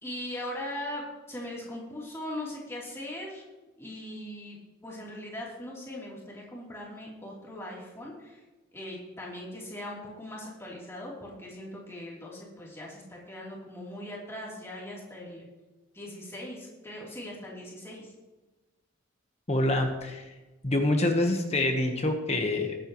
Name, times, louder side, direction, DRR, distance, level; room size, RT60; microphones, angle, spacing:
voice 1, 0.0-3.4 3.8-4.6 4.8-8.4 8.7-15.5 15.9-18.1, left 1 dB, 10° left, -5 dB, 3.3 m, -40 dB
voice 2, 19.5-20.3 20.6-22.8, left 1 dB, 30° left, 4 dB, 1.2 m, -26 dB
20.0 x 9.0 x 3.1 m, 1.2 s
head